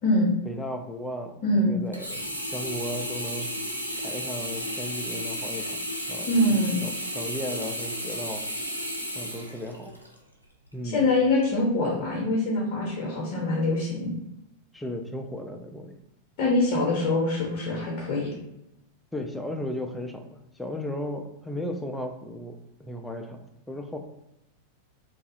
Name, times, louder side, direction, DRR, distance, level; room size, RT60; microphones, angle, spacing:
voice 1, 0.5-3.5 4.0-5.8 6.1-8.5 9.1-9.9 10.7-11.1 14.7-15.9 16.4-16.5 19.1-24.0, left 1 dB, 5° left, 4 dB, 0.3 m, -35 dB
voice 2, 1.4-1.7 6.3-6.8 10.8-14.2 16.4-18.3, left 1 dB, 45° left, -3 dB, 0.6 m, -24 dB
Sink (filling or washing), 1.9-10.2 10.7-10.8, equal, 90° left, 0.4 m, -33 dB
2.4 x 2.3 x 2.6 m, 0.88 s
figure-of-eight pair, 90°, 0 cm